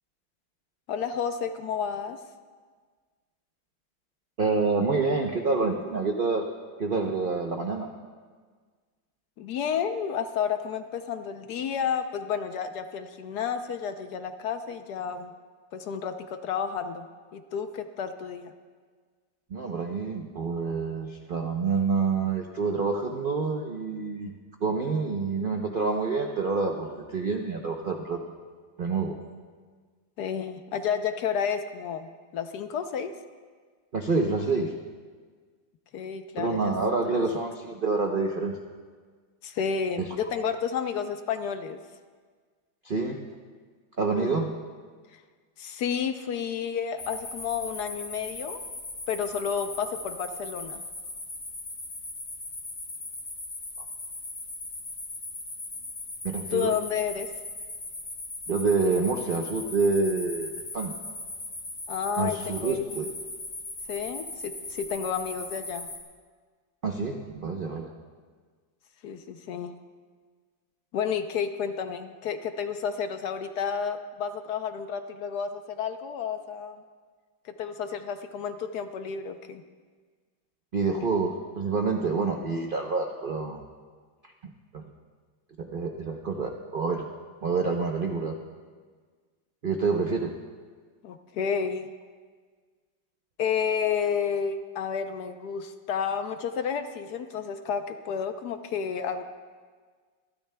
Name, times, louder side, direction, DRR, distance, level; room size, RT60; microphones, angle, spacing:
voice 1, 0.9-2.2 9.4-15.3 15.7-17.1 17.3-18.5 30.2-32.1 32.3-33.1 35.9-36.7 37.0-37.2 39.4-41.8 44.1-44.4 45.6-48.6 49.1-50.8 56.5-57.3 61.9-62.8 63.9-65.9 69.0-69.7 70.9-76.8 77.4-79.6 91.0-91.9 93.4-99.2, left 7 dB, 70° left, 8 dB, 1.1 m, -31 dB
voice 2, 4.4-6.5 6.8-7.9 19.5-24.4 24.6-28.2 28.8-29.2 33.9-34.7 36.4-38.6 42.8-43.2 44.0-44.5 56.2-56.7 58.5-60.9 62.2-63.1 66.8-67.9 80.7-83.6 84.4-84.8 85.6-87.0 87.4-88.4 89.6-90.3, right 4 dB, 65° right, 2 dB, 0.5 m, -27 dB
sound 1, 47.0-66.0, left 2 dB, 55° left, 2.4 m, -39 dB
25.5 x 12.5 x 2.2 m, 1.6 s
omnidirectional pair, 2.0 m